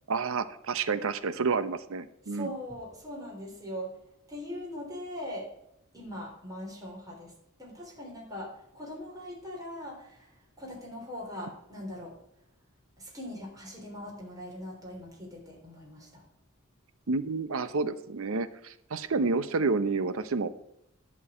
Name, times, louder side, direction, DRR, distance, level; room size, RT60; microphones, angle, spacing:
voice 1, 0.1-2.5 17.1-20.5, right 4 dB, 70° right, 13 dB, 0.7 m, -29 dB
voice 2, 2.3-4.0 4.3-5.5 5.9-7.3 7.6-12.2 13.0-16.2, equal, 20° right, -2 dB, 3.6 m, -41 dB
11.0 x 4.7 x 8.2 m, 0.79 s
head